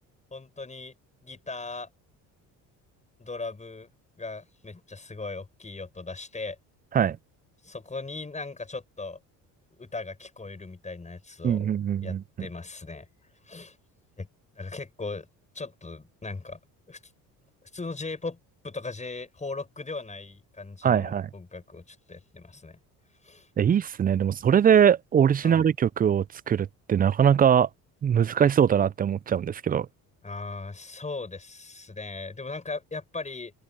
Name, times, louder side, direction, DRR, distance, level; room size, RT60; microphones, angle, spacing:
voice 1, 0.3-0.9 1.2-1.9 3.2-3.9 4.2-6.6 7.6-9.2 9.8-11.6 12.0-13.1 13.4-13.8 14.2-14.3 14.6-15.3 15.5-16.6 16.9-17.0 17.7-18.4 18.6-22.8 23.2-23.5 25.4-25.7 30.2-33.5, left 3 dB, 20° left, 6.7 m, -38 dB
voice 2, 11.4-12.2 20.8-21.3 23.6-27.7 28.0-29.9, right 8 dB, 25° right, 0.4 m, -22 dB
open air
supercardioid pair, 90°, 35 cm